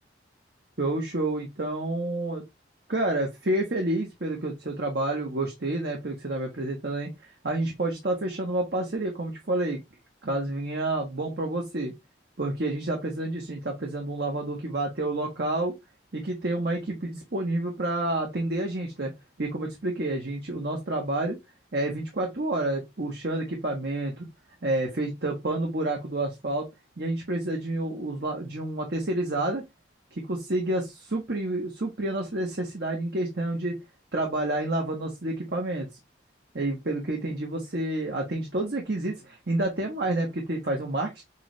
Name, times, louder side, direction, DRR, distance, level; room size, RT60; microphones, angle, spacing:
voice 1, 0.8-2.4 2.9-7.1 7.4-9.8 10.2-11.9 12.4-15.7 16.1-19.1 19.4-21.4 21.7-24.3 24.6-26.7 27.0-29.6 30.1-33.8 34.1-35.9 36.5-41.2, right 2 dB, 60° right, 1.1 m, -29 dB
6.7 x 2.4 x 3.0 m
head